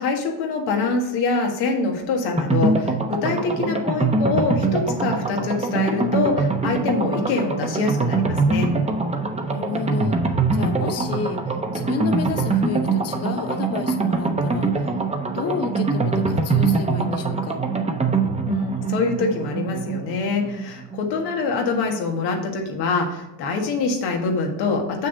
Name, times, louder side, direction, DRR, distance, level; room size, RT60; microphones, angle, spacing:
voice 1, 0.0-8.7 18.4-25.1, left 4 dB, 90° left, 2 dB, 1.8 m, -24 dB
sound 1, 2.4-21.0 21.3-21.4 21.6-21.7, right 3 dB, 15° right, 0.9 m, -23 dB
voice 2, 3.3-3.8 9.5-10.2 10.5-14.9 15.3-17.6, left 5 dB, 40° left, 7 dB, 0.7 m, -30 dB
7.1 x 6.4 x 4.0 m, 1.0 s
cardioid pair, 115°, 38 cm